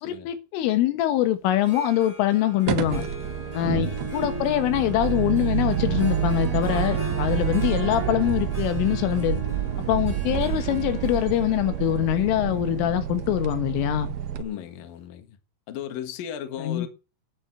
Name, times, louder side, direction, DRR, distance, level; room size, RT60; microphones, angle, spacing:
voice 1, 0.0-3.0 3.5-9.4 9.9-14.1 16.6-16.9, left 12 dB, 80° left, 3.8 m, -24 dB
Harp, 1.5-14.4, left 2 dB, 10° left, 2.4 m, -39 dB
sound 1, 2.7-14.4, right 11 dB, 85° right, 2.1 m, -28 dB
voice 2, 3.6-4.0 7.6-7.9 14.3-15.4 15.7-16.9, left 10 dB, 60° left, 2.8 m, -36 dB
10.5 x 8.5 x 8.8 m
omnidirectional pair, 5.8 m